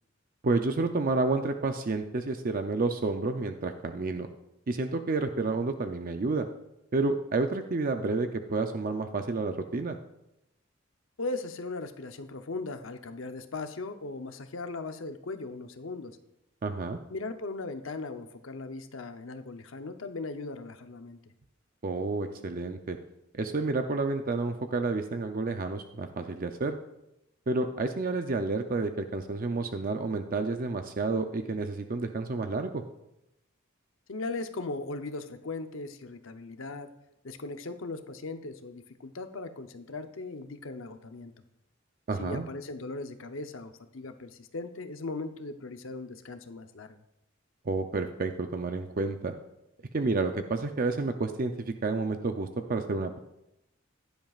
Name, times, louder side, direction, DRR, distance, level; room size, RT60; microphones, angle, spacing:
voice 1, 0.4-4.3 4.7-6.5 6.9-10.0 16.6-17.0 21.8-23.0 23.3-26.7 27.5-32.8 42.1-42.5 47.7-49.3 49.9-53.2, right 3 dB, 45° right, 6 dB, 0.6 m, -30 dB
voice 2, 11.2-16.2 17.1-21.2 34.1-36.9 37.2-41.3 42.2-47.0, left 3 dB, 75° left, 8 dB, 0.8 m, -38 dB
15.5 x 10.5 x 2.4 m, 0.86 s
head